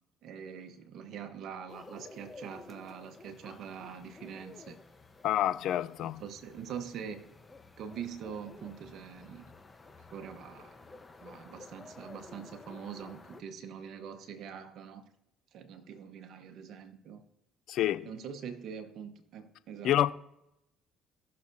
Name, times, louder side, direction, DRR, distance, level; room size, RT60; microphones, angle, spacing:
voice 1, 0.2-4.8 6.0-7.2 7.8-9.5 10.1-10.8 11.2-15.0 15.5-17.3 18.0-20.1, right 7 dB, 65° right, 1.1 m, -44 dB
sound 1, 1.7-13.4, left 3 dB, 25° left, 1.0 m, -52 dB
voice 2, 5.2-6.2 17.7-18.1 19.8-20.1, left 12 dB, 70° left, 0.4 m, -28 dB
17.0 x 6.5 x 2.7 m
supercardioid pair, 70°, 0 cm